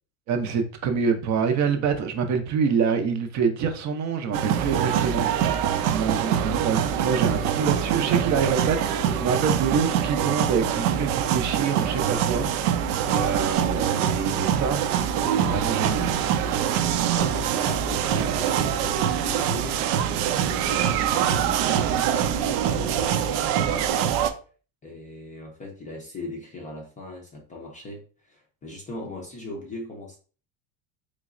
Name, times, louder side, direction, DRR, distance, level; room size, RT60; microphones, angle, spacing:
voice 1, 0.3-5.5 5.9-12.7 13.1-16.2, right 6 dB, 40° right, 0.5 m, -26 dB
sound 1, 4.3-24.3, right 9 dB, 85° right, 0.6 m, -24 dB
voice 2, 17.1-19.8 20.4-24.2 24.8-30.2, left 2 dB, 20° left, 0.4 m, -39 dB
3.9 x 3.1 x 2.4 m
cardioid pair, 150°, 46 cm